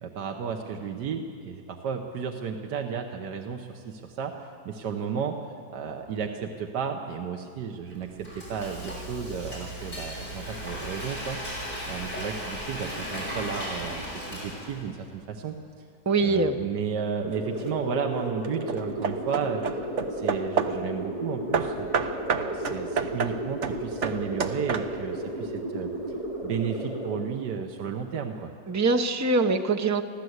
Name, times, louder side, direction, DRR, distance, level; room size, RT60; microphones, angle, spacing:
voice 1, 0.0-5.4 5.7-11.6 11.9-15.6 16.2-19.6 20.1-21.9 22.3-25.9 26.4-28.5, right 6 dB, 80° right, 3 dB, 1.6 m, -33 dB
Frying (food), 7.9-15.0, equal, 50° left, 7.8 m, -36 dB
voice 2, 16.1-16.6 28.7-30.0, right 3 dB, 20° right, 6 dB, 0.5 m, -23 dB
sound 1, 17.2-27.2, right 1 dB, 20° left, 3.6 m, -34 dB
Hammer / Wood, 17.3-17.8 18.4-20.9 21.5-25.2, right 6 dB, 50° right, 1.1 m, -30 dB
24.0 x 15.5 x 8.0 m, 2.3 s
omnidirectional pair, 1.8 m